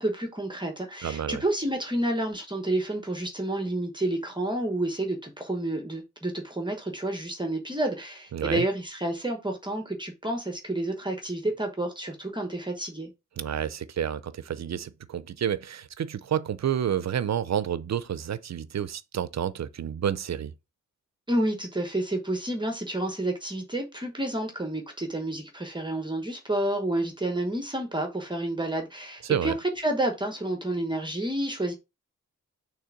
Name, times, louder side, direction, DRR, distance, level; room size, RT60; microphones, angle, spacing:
voice 1, 0.0-13.1 21.3-31.7, right 1 dB, 15° right, 1.0 m, -30 dB
voice 2, 1.0-1.4 8.3-8.6 13.4-20.5 29.2-29.5, right 9 dB, 60° right, 0.5 m, -29 dB
6.6 x 3.4 x 5.8 m
wide cardioid pair, 175°, 30 cm